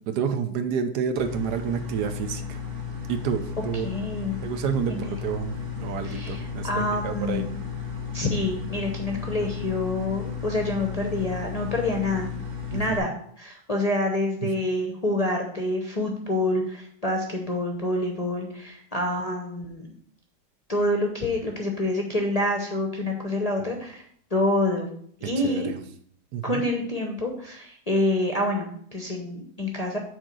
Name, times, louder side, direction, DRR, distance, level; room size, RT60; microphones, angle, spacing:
voice 1, 0.1-2.6 3.1-3.9 4.4-7.4 9.4-9.5 12.7-12.8 25.4-25.8 26.3-26.6, right 7 dB, 75° right, 8 dB, 1.2 m, -29 dB
sound 1, 1.2-13.0, left 6 dB, 30° right, 1.2 m, -34 dB
voice 2, 3.8-4.4 4.9-5.1 6.0-7.6 8.1-12.3 12.7-13.1 13.4-19.9 20.7-24.0 24.3-24.9 25.2-25.7 26.4-30.0, left 1 dB, 30° left, 1 dB, 0.7 m, -27 dB
6.3 x 4.3 x 6.2 m, 0.63 s
omnidirectional pair, 1.8 m